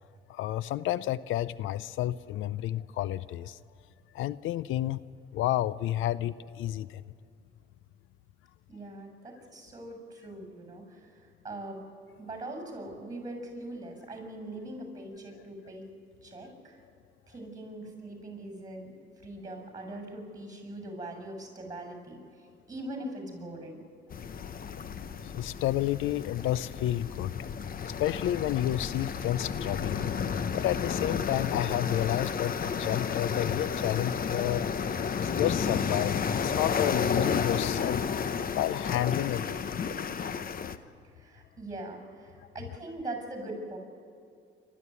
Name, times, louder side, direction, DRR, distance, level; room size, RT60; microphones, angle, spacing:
voice 1, 0.3-3.6 4.1-5.0 5.3-7.0 24.4-24.5 25.2-27.3 28.0-30.1 30.5-34.7 35.2-38.3 38.5-40.1, left 13 dB, 85° left, 18 dB, 0.5 m, -30 dB
voice 2, 8.7-11.8 12.2-15.9 16.2-16.8 17.3-23.8 41.0-43.8, right 1 dB, 20° right, 4 dB, 7.2 m, -41 dB
sound 1, 24.1-40.8, left 6 dB, 45° left, 1.0 m, -32 dB
28.5 x 13.5 x 9.7 m, 2.3 s
cardioid pair, 90°, 20 cm